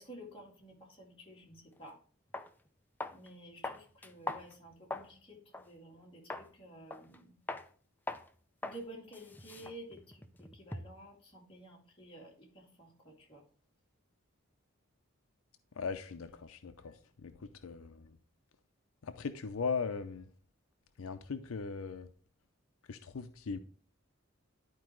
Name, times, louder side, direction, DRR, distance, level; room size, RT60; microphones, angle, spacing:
voice 1, 0.0-2.0 3.1-7.3 8.6-13.4, right 1 dB, 25° left, 2.3 m, -52 dB
sound 1, 1.8-1.9 2.3-2.5 3.0-3.3 3.6-5.1 5.5-5.7 6.3-6.5 6.9-7.2 7.5-7.7 8.1-8.3 8.6-8.8 9.1-11.0, left 2 dB, 10° left, 0.4 m, -42 dB
voice 2, 15.7-18.2 19.0-20.3 21.0-22.1 22.9-23.6, left 5 dB, 80° left, 0.5 m, -39 dB
11.5 x 4.7 x 3.0 m
head